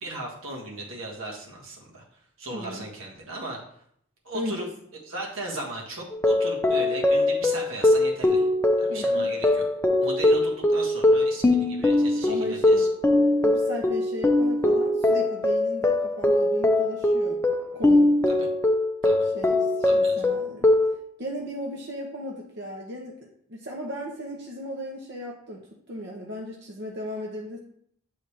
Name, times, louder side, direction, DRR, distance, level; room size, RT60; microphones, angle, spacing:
voice 1, 0.0-2.0 2.4-3.6 4.2-4.7 5.0-8.4 8.8-9.6 10.0-12.9 18.3-18.5 19.0-19.2 19.8-20.2, right 2 dB, 85° right, -1 dB, 1.5 m, -37 dB
voice 2, 2.5-2.9 4.3-4.7 8.9-9.3 12.3-12.9 13.4-17.4 17.7-18.1 19.3-20.7 21.2-23.2 23.5-25.6 25.9-27.6, equal, 55° right, -1 dB, 0.8 m, -36 dB
sound 1, 6.1-21.0, left 2 dB, 10° left, 0.4 m, -22 dB
8.4 x 4.0 x 3.2 m, 0.67 s
head